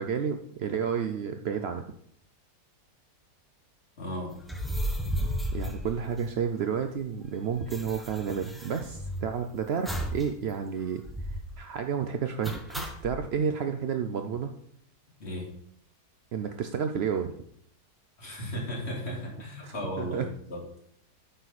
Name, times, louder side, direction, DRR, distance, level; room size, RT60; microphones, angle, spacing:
voice 1, 0.0-1.8 5.2-14.5 16.3-17.3 19.6-20.3, right 7 dB, 75° right, 6 dB, 0.5 m, -31 dB
voice 2, 4.0-4.4 15.2-15.5 18.2-20.6, equal, 40° left, -3 dB, 2.7 m, -35 dB
sound 1, 4.4-6.7 7.0-7.1 7.2-9.4 9.9-10.3 10.6-10.7 11.0-11.5 12.4-13.2, equal, ahead, 0.7 m, -34 dB
9.3 x 6.5 x 4.1 m, 0.67 s
omnidirectional pair, 1.7 m